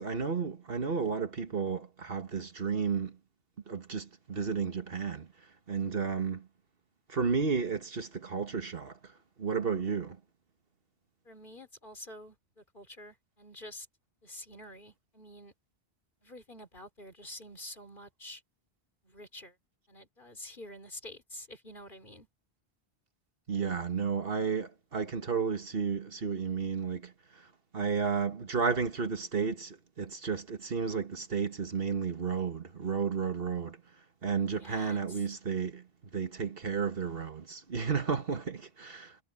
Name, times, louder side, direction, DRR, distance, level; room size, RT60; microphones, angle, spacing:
voice 1, 0.0-3.2 3.7-5.3 5.7-6.5 7.1-9.0 9.4-10.2 23.5-27.5 27.7-33.8 34.2-35.9 36.1-39.2, right 5 dB, 65° right, 1.8 m, -32 dB
voice 2, 11.2-13.9 14.2-15.5 16.2-18.4 19.0-19.6 19.9-22.3 34.5-35.3, left 1 dB, 55° left, 4.2 m, -48 dB
omnidirectional pair, 1.0 m